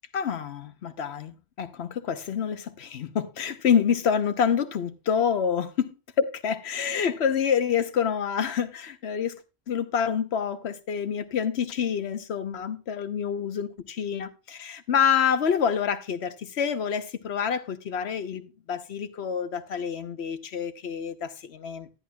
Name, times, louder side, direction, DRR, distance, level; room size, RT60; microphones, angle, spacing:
voice 1, 0.1-9.4 9.7-22.0, left 7 dB, 85° left, 1.1 m, -27 dB
13.0 x 10.0 x 2.3 m
omnidirectional pair, 1.1 m